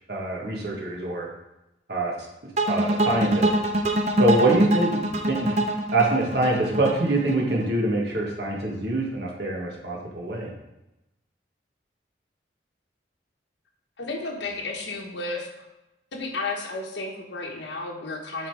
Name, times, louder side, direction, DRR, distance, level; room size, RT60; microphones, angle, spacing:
voice 1, 0.1-1.3 1.9-2.1 2.6-3.5 4.2-5.0 5.3-5.6 5.9-10.5, right 2 dB, 60° right, -2 dB, 1.6 m, -24 dB
sound 1, 2.6-7.7, right 1 dB, 35° right, 0.6 m, -24 dB
voice 2, 14.0-15.5 16.1-18.5, left 3 dB, 70° left, 1 dB, 1.2 m, -32 dB
7.7 x 3.9 x 4.8 m, 0.96 s
head